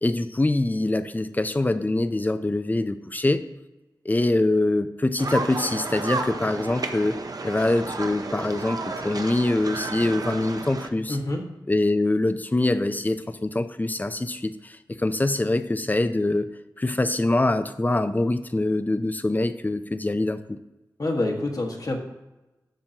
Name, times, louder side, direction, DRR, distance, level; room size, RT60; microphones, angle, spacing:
voice 1, 0.0-3.4 4.0-11.2 11.7-16.5 16.8-20.6, left 2 dB, 25° left, 11 dB, 0.5 m, -24 dB
sound 1, 5.2-10.9, right 3 dB, 55° right, 0.7 m, -32 dB
voice 2, 11.1-11.4 21.0-22.0, left 2 dB, 55° left, 1 dB, 1.5 m, -26 dB
12.0 x 7.3 x 2.9 m, 1.0 s
wide cardioid pair, 85°, 7 cm